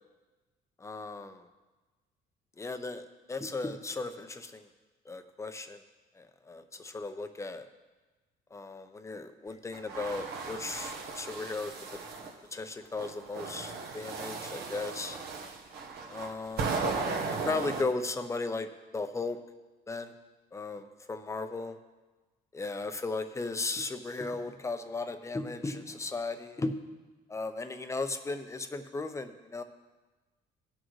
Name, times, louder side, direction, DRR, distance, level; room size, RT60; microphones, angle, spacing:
voice 1, 0.8-1.4 2.6-4.7 5.1-5.8 6.2-7.7 8.5-12.0 12.5-15.2 16.1-16.8 17.3-18.7 18.9-19.4 19.9-20.1 20.5-21.8 22.5-26.8 27.3-29.6, left 3 dB, 15° left, 9 dB, 0.7 m, -36 dB
sound 1, 9.7-12.3 13.0-17.8, right 4 dB, 70° right, 1.2 m, -36 dB
17.5 x 6.4 x 3.1 m, 1.2 s
cardioid pair, 110°, 17 cm